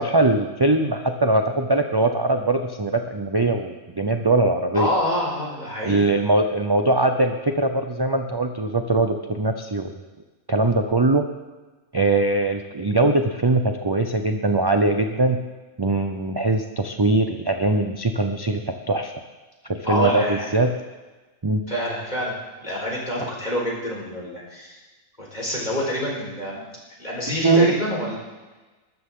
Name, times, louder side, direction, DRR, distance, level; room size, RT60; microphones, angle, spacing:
voice 1, 0.0-4.9 5.8-9.9 10.5-11.3 11.9-15.4 15.8-18.6 18.9-19.1 19.7-20.7 21.4-21.6 27.3-27.7, right 2 dB, 30° right, 5 dB, 0.4 m, -21 dB
voice 2, 4.7-6.1 19.8-20.5 21.7-22.4 22.6-24.8 25.2-26.6 27.0-28.2, equal, 30° left, -4 dB, 4.7 m, -27 dB
21.0 x 13.0 x 3.8 m, 1.2 s
omnidirectional pair, 1.5 m